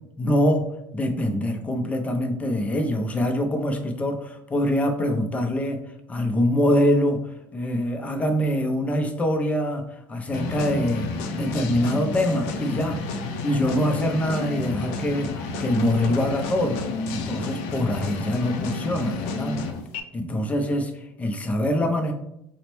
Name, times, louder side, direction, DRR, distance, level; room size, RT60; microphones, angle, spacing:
voice 1, 0.2-0.7 0.9-5.8 6.1-7.2 7.5-13.0 13.4-15.3 15.6-16.8 17.1-19.6 20.1-22.1, left 1 dB, 15° left, 5 dB, 0.4 m, -24 dB
sound 1, 10.3-20.0, left 3 dB, 75° left, 0.4 m, -30 dB
4.1 x 2.0 x 3.0 m, 0.81 s
cardioid pair, 130°, 10 cm